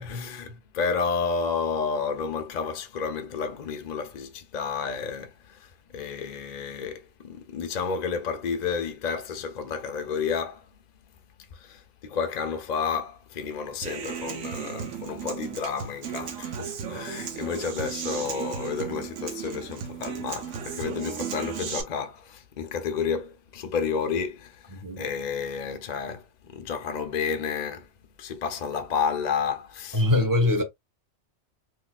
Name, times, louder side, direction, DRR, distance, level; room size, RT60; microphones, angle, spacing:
voice 1, 0.0-10.7 11.5-27.9 28.2-30.0, left 6 dB, 45° left, 0.6 m, -31 dB
Human voice / Acoustic guitar, 13.8-21.8, right 7 dB, 90° right, 1.2 m, -35 dB
voice 2, 24.7-25.0 29.9-30.6, left 2 dB, 15° right, 0.9 m, -23 dB
3.9 x 2.9 x 2.4 m
omnidirectional pair, 1.3 m